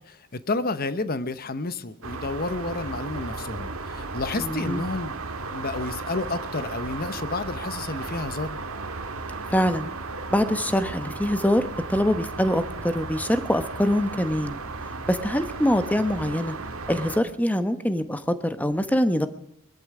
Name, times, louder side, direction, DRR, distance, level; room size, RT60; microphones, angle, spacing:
voice 1, 0.0-5.2 5.5-8.6, left 3 dB, 40° left, 13 dB, 1.0 m, -30 dB
sound 1, 2.0-17.2, right 3 dB, 70° right, 1.8 m, -35 dB
voice 2, 4.4-4.8 9.5-9.9 10.3-11.6 11.9-14.6 15.1-16.5 16.9-19.3, equal, 5° left, 10 dB, 1.0 m, -24 dB
21.5 x 14.0 x 4.9 m, 0.76 s
head